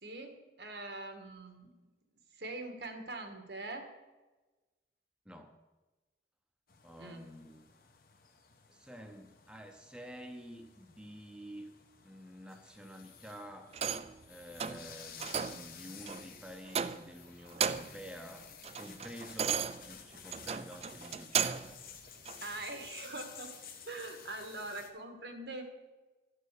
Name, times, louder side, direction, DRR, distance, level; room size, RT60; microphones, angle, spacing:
voice 1, 0.0-1.7 2.4-3.9 7.0-7.2 22.4-23.5 23.8-25.6, right 2 dB, 80° right, 5 dB, 1.6 m, -43 dB
voice 2, 5.2-5.6 6.8-7.7 8.7-11.7 12.0-13.8 14.3-18.5 18.7-21.8, equal, 5° right, 4 dB, 0.7 m, -49 dB
sound 1, 6.7-24.9, left 7 dB, 55° left, 1.2 m, -53 dB
sound 2, 13.7-14.2 14.6-14.8 15.2-15.6 16.1-16.2 16.7-17.2 17.5-18.0 18.4-21.7 22.2-22.4, right 7 dB, 35° right, 0.4 m, -35 dB
12.0 x 6.7 x 6.6 m, 1.2 s
head